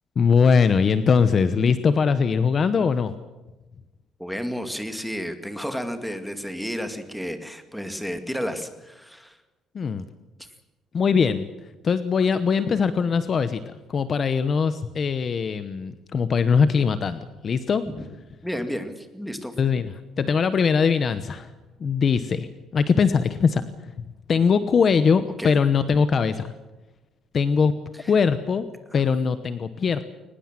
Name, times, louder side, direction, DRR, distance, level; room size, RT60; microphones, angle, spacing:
voice 1, 0.2-3.1 9.7-10.0 10.9-11.5 11.8-17.8 19.6-19.9 20.2-21.5 21.8-22.5 22.7-23.6 24.3-26.5 27.3-27.7 28.1-28.7 28.9-30.0, left 6 dB, 35° left, 12 dB, 1.0 m, -21 dB
voice 2, 4.2-9.4 18.4-19.5 25.4-25.6 28.0-28.1 28.9-29.0, equal, ahead, 8 dB, 2.1 m, -32 dB
23.0 x 20.0 x 7.5 m, 1.1 s
cardioid pair, 160°, 0 cm